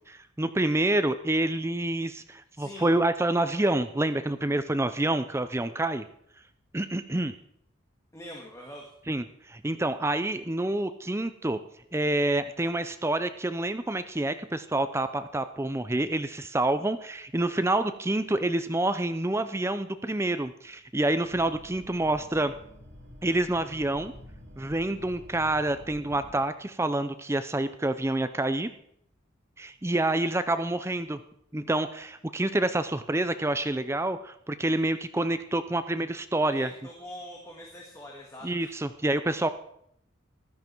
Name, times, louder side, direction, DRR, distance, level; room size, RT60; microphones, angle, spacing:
voice 1, 0.1-6.0 6.7-7.3 9.1-11.6 11.9-22.5 23.2-24.1 24.6-28.7 29.6-31.2 31.5-36.7 38.4-39.5, right 1 dB, 15° right, 11 dB, 0.5 m, -27 dB
voice 2, 2.6-2.9 8.1-8.9 36.4-38.7, left 1 dB, 15° left, -1 dB, 1.9 m, -44 dB
sound 1, 21.2-26.4, equal, 70° right, 6.7 m, -49 dB
15.0 x 13.0 x 4.6 m, 0.70 s
head